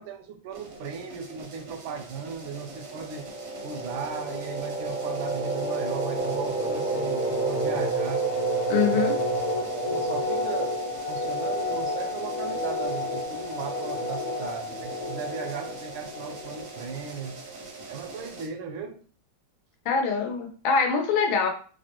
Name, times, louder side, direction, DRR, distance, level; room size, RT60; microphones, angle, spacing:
voice 1, 0.0-3.3 3.6-8.3 8.9-9.1 9.7-10.8 11.1-17.4 17.9-19.0, right 6 dB, 80° right, 6 dB, 1.4 m, -37 dB
sound 1, 0.5-18.5, right 3 dB, 65° right, 0.8 m, -43 dB
sound 2, 2.6-17.2, right 1 dB, 65° left, 1.0 m, -30 dB
voice 2, 8.7-9.1 19.8-21.5, left 5 dB, 85° left, 4 dB, 1.5 m, -24 dB
4.7 x 2.1 x 2.9 m, 0.42 s
omnidirectional pair, 2.2 m